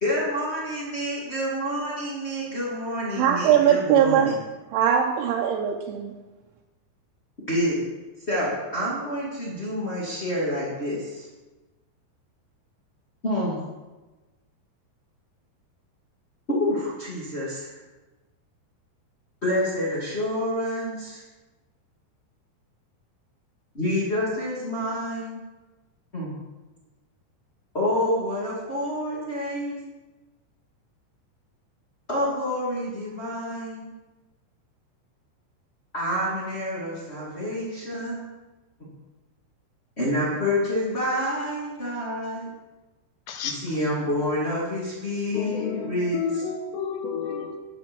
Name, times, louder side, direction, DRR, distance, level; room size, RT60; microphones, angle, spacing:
voice 1, 0.0-4.3 7.5-7.8 8.3-11.3 13.2-13.6 16.6-17.7 19.4-21.2 23.7-25.4 26.1-26.3 27.7-29.8 32.1-33.9 35.9-38.3 40.0-42.5 43.4-46.4, left 1 dB, 50° left, -7 dB, 0.7 m, -28 dB
voice 2, 3.2-4.3 4.7-6.1, right 9 dB, 85° right, 0 dB, 3.0 m, -20 dB
voice 3, 45.3-47.6, left 6 dB, 75° left, 4 dB, 2.9 m, -31 dB
11.0 x 6.2 x 6.2 m, 1.2 s
omnidirectional pair, 5.4 m